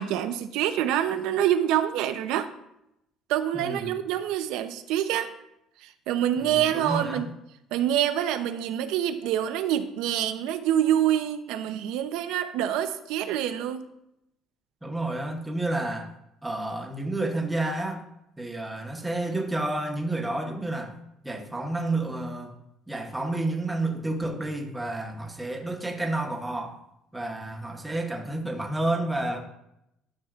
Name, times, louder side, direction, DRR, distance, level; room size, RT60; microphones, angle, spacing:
voice 1, 0.0-2.5 3.3-5.3 5.8-7.3 7.7-13.9, right 11 dB, 80° right, 10 dB, 0.5 m, -26 dB
voice 2, 3.5-4.0 6.4-7.2 14.8-16.1 16.4-18.0 18.4-20.9 21.2-22.6 22.9-26.8 27.1-29.4, right 2 dB, 5° right, 2 dB, 0.8 m, -30 dB
12.0 x 5.6 x 2.4 m, 0.83 s
cardioid pair, 175°, 0 cm